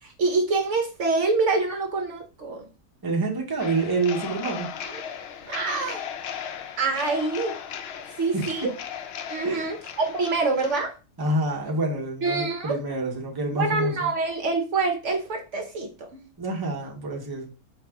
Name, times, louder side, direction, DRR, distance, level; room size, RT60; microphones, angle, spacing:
voice 1, 0.0-2.6 4.9-5.0 5.5-6.0 6.8-7.6 8.1-8.7 9.3-10.9 12.2-12.7 13.5-16.2, right 3 dB, 65° right, 5 dB, 0.9 m, -26 dB
voice 2, 3.0-4.7 8.3-8.4 9.4-9.7 11.2-14.1 16.4-17.5, right 2 dB, 20° right, 0 dB, 0.8 m, -27 dB
sound 1, 3.6-10.8, left 8 dB, 65° left, 0.6 m, -37 dB
4.8 x 2.6 x 3.4 m, 0.34 s
omnidirectional pair, 1.5 m